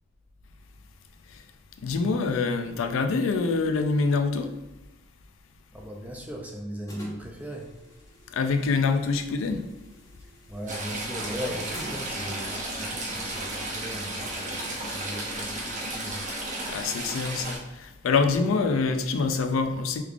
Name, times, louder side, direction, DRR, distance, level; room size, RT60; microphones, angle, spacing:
voice 1, 1.8-4.5 8.3-9.6 16.6-20.0, left 4 dB, 75° left, 7 dB, 0.4 m, -25 dB
voice 2, 5.7-7.7 10.5-16.2, equal, 10° right, 0 dB, 0.4 m, -38 dB
sound 1, 6.9-12.9, equal, 15° left, 0.8 m, -47 dB
Stream / Trickle dribble, 10.7-17.6, right 1 dB, 40° right, 0.7 m, -33 dB
3.4 x 3.2 x 2.4 m, 1.1 s
head